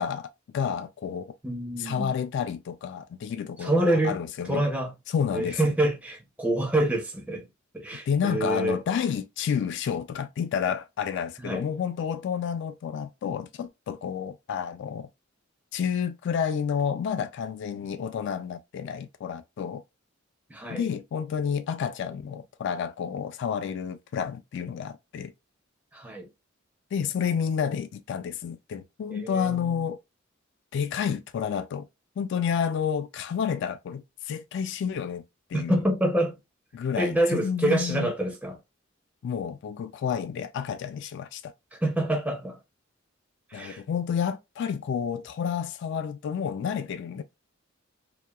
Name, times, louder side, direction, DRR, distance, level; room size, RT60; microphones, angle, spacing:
voice 1, 0.0-1.3 1.8-4.6 5.1-5.6 8.1-15.1 15.7-19.8 20.7-25.3 26.9-30.0 30.7-31.9 32.2-35.2 35.5-35.8 36.7-38.1 39.2-41.5 43.5-47.2, left 7 dB, 60° left, 0.3 m, -30 dB
voice 2, 1.4-2.1 3.6-4.2 4.5-4.9 5.3-7.5 7.7-8.8 11.4-11.6 20.5-20.9 25.9-26.3 29.1-29.8 35.5-36.4 37.0-38.6 41.7-42.6 43.5-43.8, right 1 dB, 5° right, 0.4 m, -26 dB
2.8 x 2.2 x 2.2 m
head